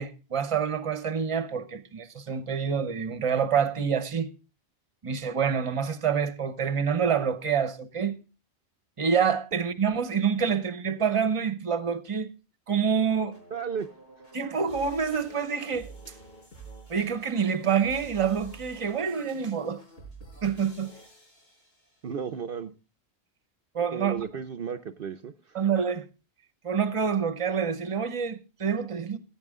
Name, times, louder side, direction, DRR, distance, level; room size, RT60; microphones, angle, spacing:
voice 1, 0.0-4.3 5.0-8.2 9.0-12.3 12.7-13.4 14.3-15.9 16.9-19.8 20.4-20.9 23.7-24.3 25.5-26.1 26.6-29.2, right 7 dB, 30° right, 0.9 m, -27 dB
sound 1, 12.8-22.1, right 3 dB, 60° left, 5.5 m, -49 dB
voice 2, 13.5-13.9 22.0-22.7 23.9-25.6, right 7 dB, 60° right, 0.8 m, -34 dB
16.5 x 8.8 x 3.6 m
omnidirectional pair, 1.1 m